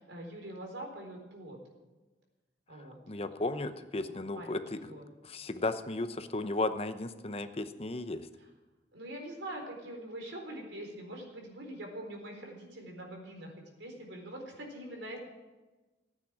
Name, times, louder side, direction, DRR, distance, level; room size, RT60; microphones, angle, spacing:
voice 1, 0.0-1.6 2.7-3.3 4.4-4.6 4.9-5.0 8.9-15.2, right 1 dB, 85° right, 1 dB, 4.2 m, -44 dB
voice 2, 3.1-4.9 5.2-8.3, left 2 dB, 35° left, 10 dB, 0.8 m, -35 dB
15.5 x 9.1 x 9.0 m, 1.2 s
head